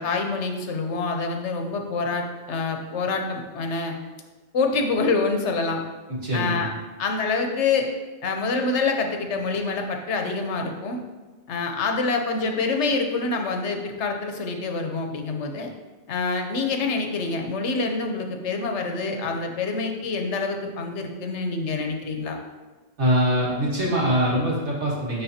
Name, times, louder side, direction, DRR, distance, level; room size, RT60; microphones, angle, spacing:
voice 1, 0.0-3.9 4.5-5.8 6.3-6.7 7.0-7.9 8.2-11.0 11.5-15.7 16.1-22.4, left 4 dB, 80° left, 3 dB, 1.1 m, -26 dB
voice 2, 6.1-6.6 23.0-25.2, equal, 80° right, -5 dB, 2.2 m, -23 dB
11.5 x 3.9 x 2.8 m, 1.3 s
omnidirectional pair, 1.2 m